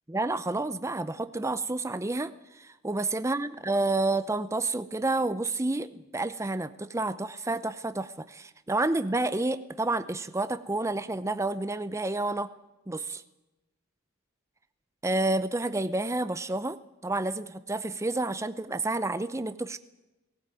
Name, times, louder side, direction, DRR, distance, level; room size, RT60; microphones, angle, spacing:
voice 1, 0.1-12.5 12.9-13.2 15.0-16.8 17.0-19.8, right 2 dB, 15° right, 13 dB, 0.6 m, -29 dB
19.0 x 17.5 x 9.2 m, 1.0 s
head